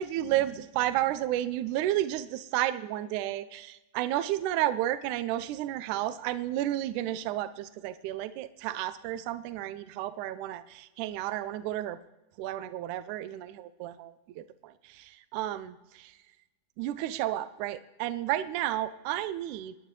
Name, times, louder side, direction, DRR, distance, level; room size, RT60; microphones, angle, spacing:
voice 1, 0.0-12.0 12.4-16.1 16.8-19.8, right 13 dB, 85° right, 12 dB, 2.0 m, -32 dB
29.0 x 9.8 x 3.2 m, 1.1 s
omnidirectional pair, 3.5 m